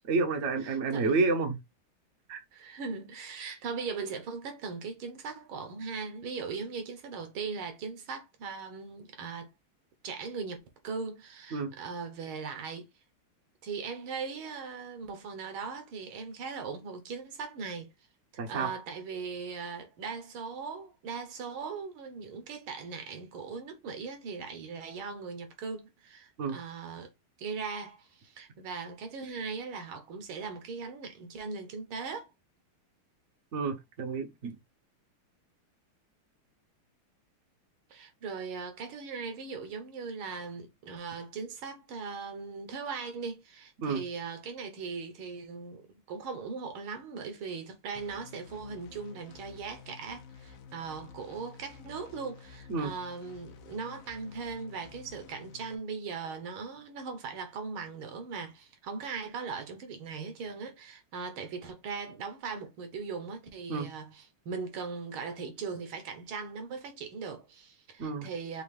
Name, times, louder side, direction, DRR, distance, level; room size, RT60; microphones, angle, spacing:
voice 1, 0.1-1.6 2.3-2.4 11.5-11.7 18.4-18.7 26.4-26.6 33.5-34.5 43.8-44.0 52.7-52.9 63.7-63.9 68.0-68.3, right 4 dB, 55° right, 0.8 m, -29 dB
voice 2, 0.6-1.1 2.5-9.5 10.0-12.9 13.6-17.9 18.5-27.1 27.4-32.3 37.9-68.6, right 5 dB, 75° right, 1.7 m, -39 dB
sound 1, 48.0-55.7, left 6 dB, 70° left, 1.4 m, -51 dB
5.5 x 2.5 x 3.2 m
omnidirectional pair, 2.4 m